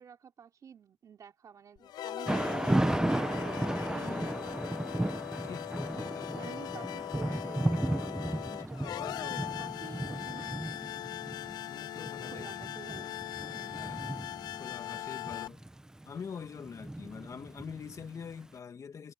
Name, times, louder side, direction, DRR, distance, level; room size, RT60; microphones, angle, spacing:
voice 1, 0.0-3.7 6.4-10.9 12.3-13.1 13.5-14.0, right 7 dB, 55° right, 3.3 m, -50 dB
sound 1, 1.8-15.5, left 13 dB, 75° left, 0.4 m, -40 dB
Thunder / Rain, 2.3-18.3, right 1 dB, 10° right, 1.0 m, -34 dB
voice 2, 3.9-4.5 5.4-6.4 11.7-12.5 13.7-14.1 14.6-15.6 16.1-19.1, left 6 dB, 50° left, 2.3 m, -45 dB
cardioid pair, 75°, 7 cm